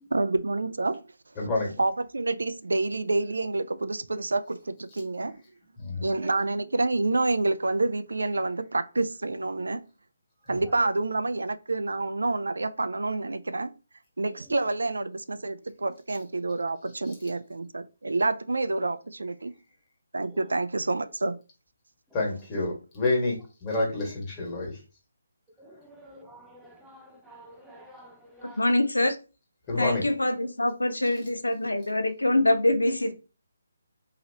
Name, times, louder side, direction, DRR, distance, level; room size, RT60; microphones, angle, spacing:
voice 1, 0.1-1.0 1.8-5.4 6.0-9.8 10.5-13.7 14.2-19.5 20.1-21.4, right 2 dB, 75° right, 0.3 m, -28 dB
voice 2, 1.4-1.7 5.8-6.1 22.1-24.8 29.7-30.0, left 2 dB, 20° left, 1.5 m, -28 dB
voice 3, 25.6-28.7, right 1 dB, 5° right, 0.5 m, -50 dB
voice 4, 28.4-29.2 29.8-33.1, left 1 dB, 90° left, 0.5 m, -24 dB
2.9 x 2.9 x 2.8 m
figure-of-eight pair, 150°, 0 cm